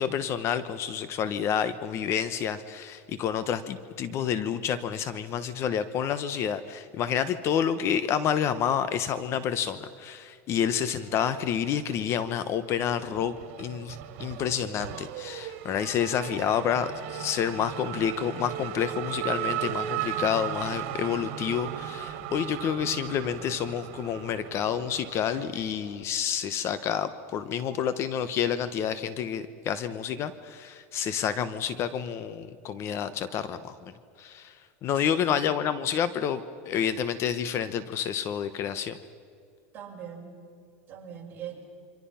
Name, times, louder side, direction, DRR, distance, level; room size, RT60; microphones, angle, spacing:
voice 1, 0.0-33.8 34.2-34.6 34.8-36.4 36.7-39.0, left 8 dB, 40° left, 13 dB, 1.0 m, -29 dB
Race car auto racing / Accelerating revving vroom, 11.0-12.0 12.3-26.0, right 11 dB, 65° right, 2.7 m, -37 dB
voice 2, 34.9-35.6 39.7-40.5 40.9-41.6, right 8 dB, 30° right, -3 dB, 6.8 m, -42 dB
29.0 x 25.5 x 5.7 m, 2.3 s
supercardioid pair, 140°, 7 cm